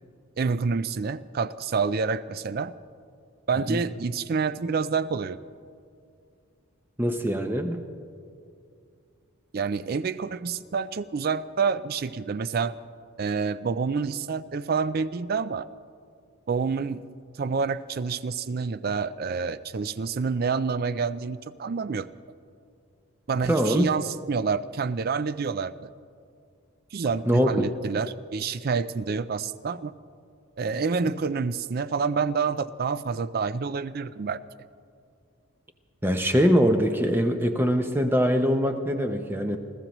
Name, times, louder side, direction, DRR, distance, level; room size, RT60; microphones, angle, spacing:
voice 1, 0.4-2.7 3.5-5.4 9.5-12.7 13.2-15.7 16.5-17.0 17.4-22.1 23.3-25.9 26.9-29.9 30.6-34.4, right 5 dB, 45° right, 16 dB, 0.4 m, -28 dB
voice 2, 7.0-7.8 23.5-23.8 27.3-27.7 36.0-39.6, equal, 10° right, 6 dB, 0.6 m, -23 dB
28.0 x 14.5 x 3.0 m, 2.3 s
head